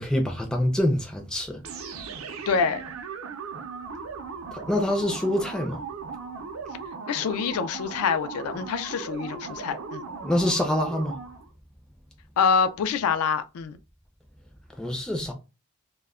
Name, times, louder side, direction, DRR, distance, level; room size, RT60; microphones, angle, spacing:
voice 1, 0.0-1.6 4.5-5.8 10.2-11.2 14.8-15.3, left 1 dB, 5° left, 0.3 m, -25 dB
sound 1, 1.6-11.5, right 5 dB, 70° right, 0.5 m, -38 dB
voice 2, 2.5-2.8 7.1-10.0 12.4-13.7, left 6 dB, 80° left, 0.3 m, -25 dB
2.1 x 2.1 x 3.5 m
head